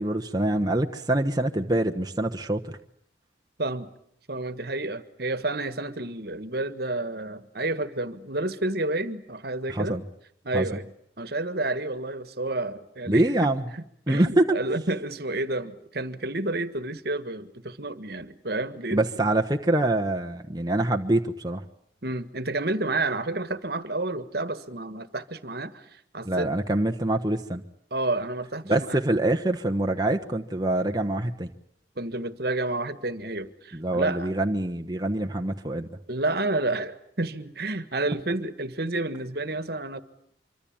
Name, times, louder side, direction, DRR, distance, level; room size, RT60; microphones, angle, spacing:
voice 1, 0.0-2.8 9.7-10.0 10.5-10.7 13.1-13.7 14.1-14.4 18.9-21.6 26.2-27.6 28.7-31.5 33.7-35.9, right 1 dB, 20° right, 3 dB, 1.1 m, -25 dB
voice 2, 3.6-3.9 4.3-10.0 10.4-10.8 11.2-13.5 13.7-19.3 22.0-26.5 27.9-29.0 32.0-34.3 36.1-40.0, right 2 dB, 55° right, 13 dB, 1.6 m, -30 dB
25.5 x 24.5 x 8.8 m, 0.69 s
head